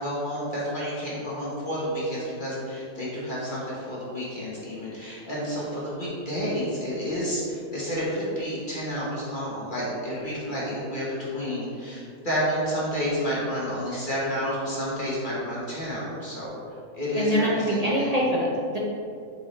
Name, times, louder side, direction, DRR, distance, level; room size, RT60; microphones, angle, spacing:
voice 1, 0.0-16.5 16.9-18.1, equal, 30° left, -7 dB, 1.4 m, -30 dB
voice 2, 17.1-18.8, equal, 50° right, -4 dB, 0.4 m, -24 dB
7.1 x 4.6 x 3.3 m, 2.4 s
omnidirectional pair, 1.7 m